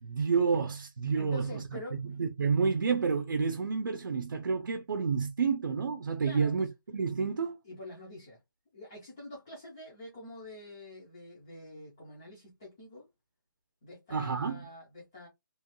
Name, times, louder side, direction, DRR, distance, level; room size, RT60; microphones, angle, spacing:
voice 1, 0.0-1.6 2.2-7.6 14.1-14.6, right 5 dB, 65° right, 0.6 m, -29 dB
voice 2, 1.2-2.0 6.2-6.6 7.6-8.4 8.7-13.1 13.8-15.3, left 1 dB, 10° left, 0.4 m, -46 dB
3.0 x 2.2 x 2.9 m
hypercardioid pair, 180°, 11 cm